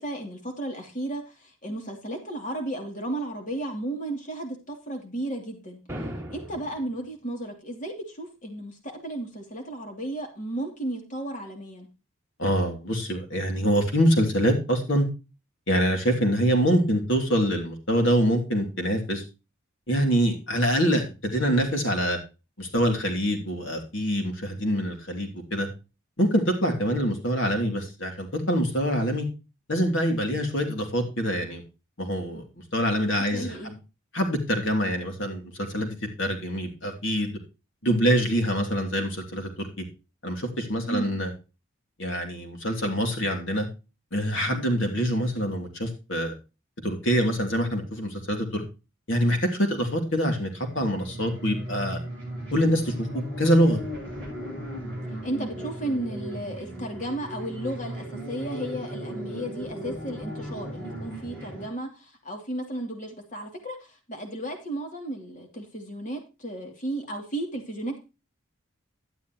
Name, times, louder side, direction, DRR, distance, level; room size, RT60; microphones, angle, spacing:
voice 1, 0.0-5.8 6.3-11.9 33.2-33.7 40.8-41.1 55.2-68.0, right 1 dB, 35° left, 2 dB, 2.8 m, -34 dB
sound 1, 5.9-6.9, equal, 10° right, 1.8 m, -37 dB
voice 2, 12.4-15.0 15.7-19.2 19.9-22.2 22.6-25.7 26.2-29.3 29.7-31.6 32.0-32.4 32.7-33.6 34.1-37.4 37.8-39.8 40.2-41.3 42.0-43.7 44.1-46.3 46.8-48.6 49.1-52.0 52.5-53.8, equal, 65° left, 4 dB, 2.9 m, -25 dB
sound 2, 50.3-61.7, right 1 dB, 10° left, 7.4 m, -36 dB
12.0 x 10.5 x 3.0 m, 0.29 s
head